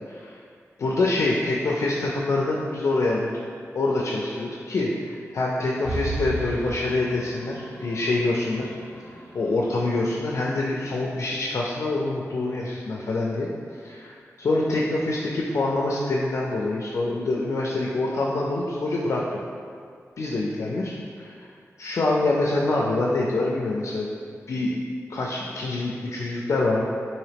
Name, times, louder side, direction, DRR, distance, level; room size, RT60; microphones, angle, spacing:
voice 1, 0.1-0.4 0.8-3.3 3.7-8.7 9.3-13.5 13.8-19.4 20.2-21.5 21.8-24.1 24.5-24.8 25.1-26.8, left 2 dB, 65° left, -3 dB, 0.3 m, -25 dB
sound 1, 5.8-11.4, right 1 dB, 20° right, 1.2 m, -36 dB
3.8 x 2.6 x 3.4 m, 2.2 s
wide cardioid pair, 150°, 6 cm